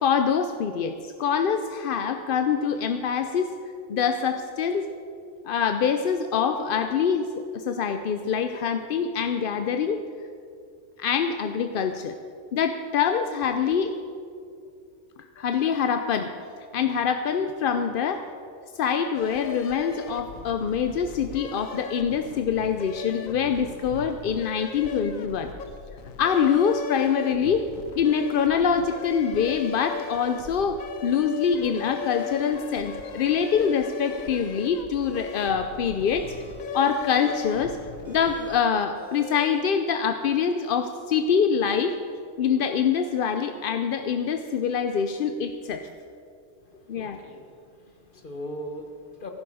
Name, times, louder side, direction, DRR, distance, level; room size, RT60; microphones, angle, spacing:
voice 1, 0.0-3.5 3.9-4.9 5.4-10.0 11.0-12.1 12.5-13.9 15.4-16.3 16.7-18.3 18.8-25.5 26.2-27.7 28.0-36.3 36.7-37.8 38.1-41.9 42.4-45.9 46.9-47.2, left 7 dB, 60° left, 7 dB, 0.6 m, -25 dB
sound 1, 19.1-38.6, left 6 dB, 85° left, 1.2 m, -38 dB
sound 2, 32.0-32.5 32.9-33.5 33.8-34.5 34.9-39.5, right 3 dB, 55° right, 3.2 m, -43 dB
voice 2, 46.6-49.3, equal, 45° left, 4 dB, 1.3 m, -40 dB
15.0 x 11.5 x 4.9 m, 2.3 s
omnidirectional pair, 1.3 m